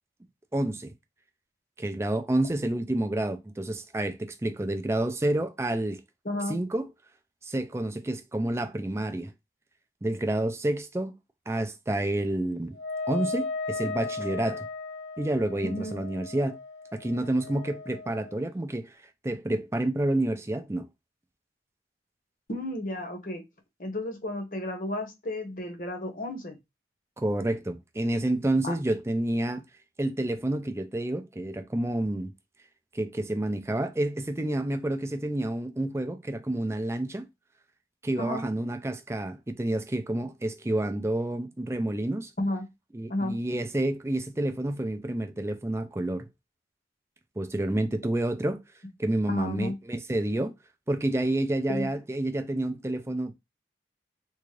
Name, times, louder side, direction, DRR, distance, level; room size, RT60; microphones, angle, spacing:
voice 1, 0.5-0.9 1.8-6.0 6.5-6.8 7.4-9.3 10.0-11.1 11.5-12.8 13.1-14.7 15.2-16.6 16.9-18.9 19.2-20.9 27.2-29.6 30.0-32.3 32.9-37.3 38.0-42.3 42.9-46.3 47.4-48.6 49.0-50.5 50.9-53.3, right 1 dB, 15° right, 0.4 m, -29 dB
voice 2, 6.2-6.6 15.6-16.0 22.5-23.4 23.8-26.6 28.6-28.7 38.2-38.5 42.4-42.7 43.1-43.4 49.3-49.8 51.7-51.9, left 1 dB, 45° left, 0.9 m, -32 dB
Wind instrument woodwind instrument, 12.7-18.4, left 3 dB, 70° left, 0.7 m, -36 dB
3.6 x 2.4 x 3.2 m
head